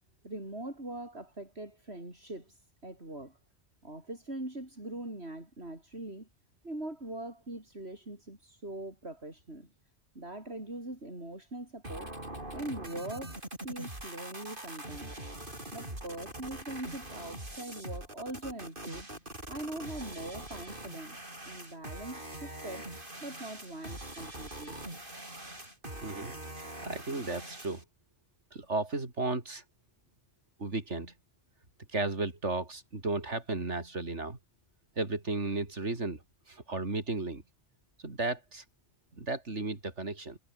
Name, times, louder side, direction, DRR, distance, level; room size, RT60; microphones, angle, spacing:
voice 1, 0.2-3.4 3.8-6.3 6.6-9.7 10.1-12.1 12.5-15.1 15.7-19.1 19.5-21.2 21.4-22.9 23.2-24.8, right 1 dB, 65° right, 6.8 m, -42 dB
sound 1, 11.8-27.8, right 1 dB, 45° right, 7.1 m, -43 dB
voice 2, 26.0-27.8 28.5-29.6 30.6-31.1 31.9-34.4 35.0-37.4 38.0-38.6 39.1-40.4, right 3 dB, 80° right, 4.1 m, -34 dB
omnidirectional pair, 1.2 m